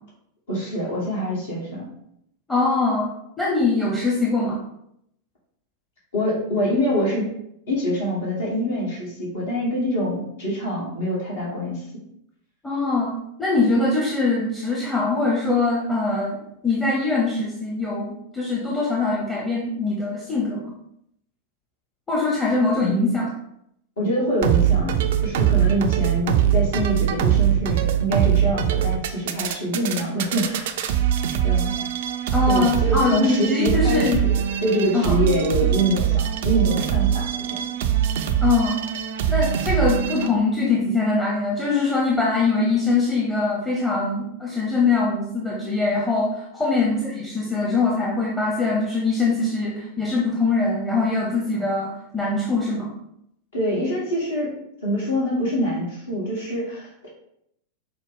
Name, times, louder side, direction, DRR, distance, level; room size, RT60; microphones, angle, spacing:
voice 1, 0.5-1.9 6.1-7.3 7.7-11.8 22.8-23.2 24.0-30.9 31.4-31.8 32.5-37.7 46.7-46.8 53.5-57.1, equal, 65° left, -5 dB, 1.4 m, -25 dB
voice 2, 2.5-3.1 3.4-4.6 12.6-20.7 22.1-23.3 32.3-34.2 34.9-35.2 38.4-38.8 39.3-52.9, left 3 dB, 10° left, -4 dB, 0.8 m, -22 dB
sound 1, 24.4-40.3, right 10 dB, 55° right, 0.3 m, -22 dB
5.4 x 2.1 x 3.6 m, 0.75 s
figure-of-eight pair, 90°, 0 cm